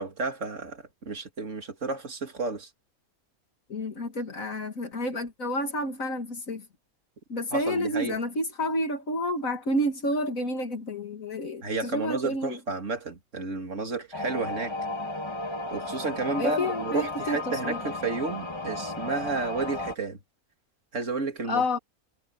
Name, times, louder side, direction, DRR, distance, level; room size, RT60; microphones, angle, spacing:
voice 1, 0.0-2.7 7.5-8.2 11.6-14.7 15.7-20.2 20.9-21.6, right 3 dB, 55° right, 3.0 m, -31 dB
voice 2, 3.7-6.7 7.3-12.6 16.4-17.8 21.5-21.8, left 1 dB, 65° left, 2.5 m, -30 dB
sound 1, 14.1-20.0, left 2 dB, 15° left, 2.3 m, -34 dB
omnidirectional pair, 1.6 m